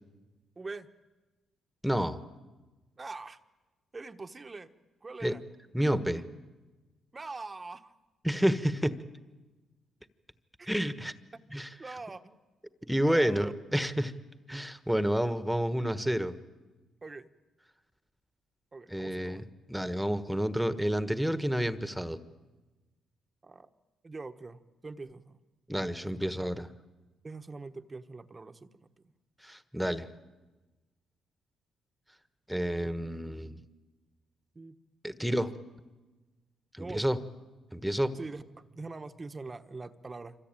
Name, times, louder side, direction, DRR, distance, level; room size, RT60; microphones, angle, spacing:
voice 1, 0.6-0.9 3.0-3.4 3.9-4.7 5.0-5.4 7.1-7.9 10.6-10.7 11.8-12.4 13.0-13.5 17.0-17.3 18.7-19.4 23.4-23.7 24.0-25.4 26.4-26.5 27.2-29.1 32.8-32.9 34.5-34.7 35.2-35.4 36.8-37.0 38.1-40.4, right 3 dB, 25° right, 9 dB, 1.2 m, -43 dB
voice 2, 1.8-2.2 5.2-5.4 5.7-6.2 8.2-9.0 10.7-11.1 11.5-11.7 12.8-14.1 14.5-16.4 18.9-22.2 25.7-26.7 29.4-30.1 32.5-33.6 35.0-35.5 36.7-37.2 37.7-38.1, equal, ahead, 11 dB, 1.4 m, -29 dB
26.5 x 25.0 x 9.1 m, 1.2 s
cardioid pair, 90°, 0 cm